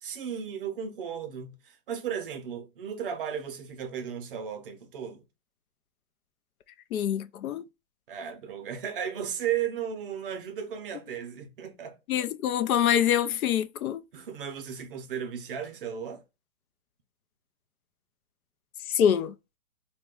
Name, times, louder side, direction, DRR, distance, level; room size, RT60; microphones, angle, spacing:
voice 1, 0.0-5.2 8.1-12.0 14.1-16.2, right 8 dB, 40° right, 0.6 m, -35 dB
voice 2, 6.9-7.6 12.1-14.0 18.9-19.3, left 9 dB, 80° left, 0.6 m, -25 dB
2.9 x 2.2 x 3.6 m
hypercardioid pair, 150°, 42 cm